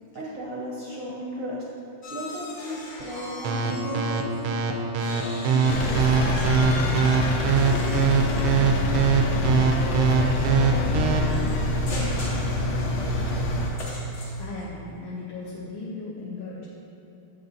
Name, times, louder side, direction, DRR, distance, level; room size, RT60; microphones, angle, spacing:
voice 1, 0.1-1.6 2.1-6.6 7.3-9.1 9.5-11.4, equal, 55° right, -5 dB, 0.9 m, -36 dB
sound 1, 2.0-4.4 4.7-14.6, left 2 dB, 50° left, 1.0 m, -39 dB
sound 2, 3.4-11.2, right 7 dB, 80° right, 1.5 m, -22 dB
Engine, 5.7-13.7, left 1 dB, 65° left, 1.2 m, -25 dB
voice 2, 14.4-16.7, left 3 dB, 80° left, -6 dB, 1.7 m, -37 dB
7.8 x 5.4 x 4.0 m, 2.7 s
omnidirectional pair, 2.4 m